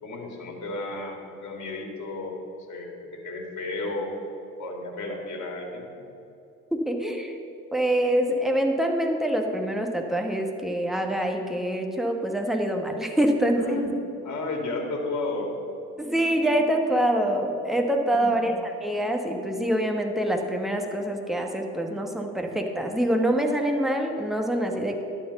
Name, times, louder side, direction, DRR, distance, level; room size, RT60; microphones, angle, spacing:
voice 1, 0.0-2.4 2.7-4.1 4.6-6.0 13.5-15.5 18.1-18.5, left 2 dB, 55° left, 2 dB, 2.2 m, -33 dB
voice 2, 6.7-7.3 7.7-13.8 16.0-25.0, right 1 dB, ahead, 2 dB, 1.3 m, -25 dB
11.0 x 4.6 x 8.0 m, 2.7 s
hypercardioid pair, 70°, 35 cm